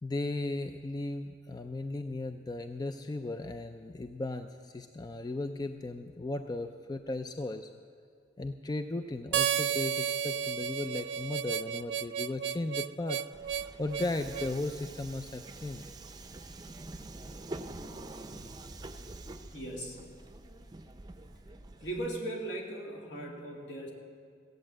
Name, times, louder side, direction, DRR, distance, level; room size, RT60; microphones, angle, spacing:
voice 1, 0.0-7.7 8.4-13.2 13.8-15.8, left 2 dB, 20° left, 8 dB, 0.4 m, -36 dB
Harmonica, 9.3-14.5, right 8 dB, 75° right, 0.4 m, -32 dB
Subway metro underground, 13.3-22.1, right 2 dB, 20° right, 0.6 m, -46 dB
voice 2, 19.5-20.0 21.8-23.9, right 1 dB, 70° left, -1 dB, 2.5 m, -38 dB
15.5 x 8.9 x 7.5 m, 2.1 s
head